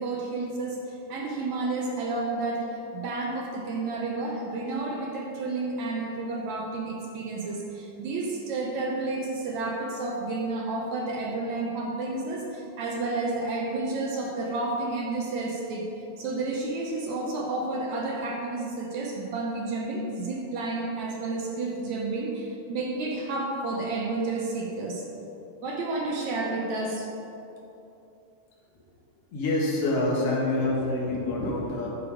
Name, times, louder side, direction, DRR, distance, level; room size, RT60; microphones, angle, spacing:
voice 1, 0.0-15.9 16.2-25.0 25.6-27.1, right 3 dB, 75° right, -1 dB, 1.8 m, -31 dB
voice 2, 29.3-31.9, left 2 dB, 50° left, -4 dB, 2.3 m, -26 dB
9.8 x 6.8 x 4.9 m, 3.0 s
omnidirectional pair, 4.1 m